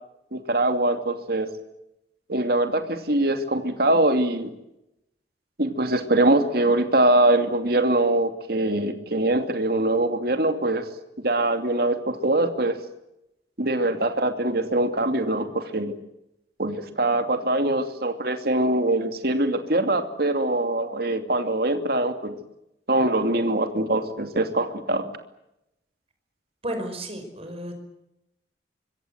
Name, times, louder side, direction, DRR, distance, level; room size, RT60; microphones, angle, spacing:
voice 1, 0.3-1.5 2.3-4.5 5.6-10.9 11.2-12.8 13.6-16.0 16.6-22.4 22.9-25.1, right 2 dB, 55° right, 7 dB, 2.6 m, -23 dB
voice 2, 26.6-27.8, right 1 dB, 35° right, 6 dB, 5.4 m, -33 dB
25.5 x 23.5 x 8.0 m, 0.88 s
head